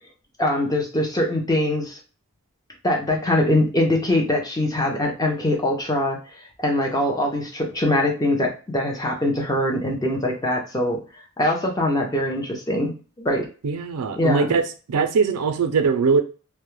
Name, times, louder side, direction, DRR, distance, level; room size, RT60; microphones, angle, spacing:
voice 1, 0.4-2.0 2.8-6.2 6.6-11.0 11.4-13.5 14.2-14.5, left 1 dB, 15° left, 2 dB, 0.5 m, -22 dB
voice 2, 13.6-14.6 14.9-16.2, right 5 dB, 90° right, 8 dB, 0.4 m, -21 dB
2.2 x 2.0 x 3.0 m, 0.36 s
head